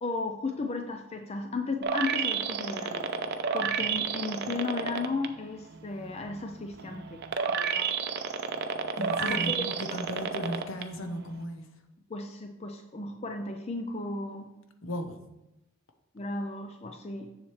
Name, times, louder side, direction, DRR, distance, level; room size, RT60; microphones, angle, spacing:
voice 1, 0.0-3.1 3.5-7.2 7.5-7.9 9.0-10.0 12.1-14.5 16.1-17.3, left 3 dB, 30° left, 5 dB, 0.4 m, -35 dB
sound 1, 1.8-5.3 5.7-10.8 11.3-11.4, right 6 dB, 50° right, 0.5 m, -30 dB
voice 2, 9.0-11.7 14.8-15.2, equal, 60° left, 7 dB, 0.8 m, -36 dB
7.2 x 7.1 x 3.2 m, 0.93 s
head